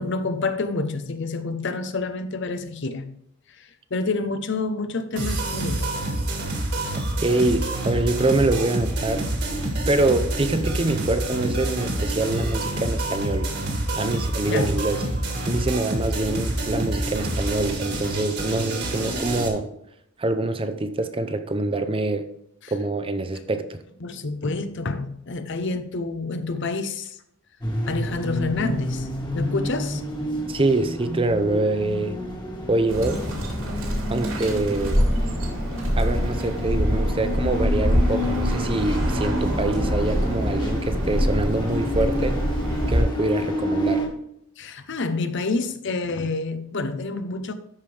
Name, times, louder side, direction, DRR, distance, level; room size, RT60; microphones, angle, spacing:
voice 1, 0.0-3.1 3.6-5.9 7.5-7.6 14.5-14.7 22.6-22.7 24.0-27.2 27.9-29.1 29.3-30.0 44.6-47.5, left 3 dB, 55° left, 0.7 m, -28 dB
sound 1, 5.2-19.5, right 1 dB, 50° right, 1.9 m, -27 dB
voice 2, 7.2-9.3 9.9-13.5 14.0-15.0 15.4-19.7 20.2-22.3 22.7-23.8 30.5-32.2 32.7-33.2 34.1-35.0 36.0-42.4 42.9-44.0, right 2 dB, 25° right, 0.6 m, -25 dB
sound 2, 27.6-44.1, equal, 20° left, 1.7 m, -30 dB
Bird, 32.9-43.0, equal, 80° right, 2.9 m, -25 dB
13.0 x 5.2 x 3.3 m
head